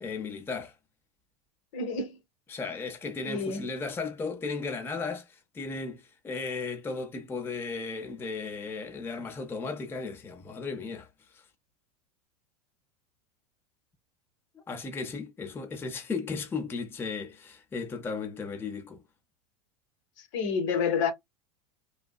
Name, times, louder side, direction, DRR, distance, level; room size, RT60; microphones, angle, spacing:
voice 1, 0.0-0.7 2.5-11.1 11.3-11.4 14.5-19.0, left 4 dB, 10° left, 0.5 m, -35 dB
voice 2, 1.7-2.2 3.3-3.7 20.3-21.1, left 5 dB, 55° left, 0.7 m, -28 dB
2.7 x 2.3 x 2.2 m
figure-of-eight pair, 80°, 19 cm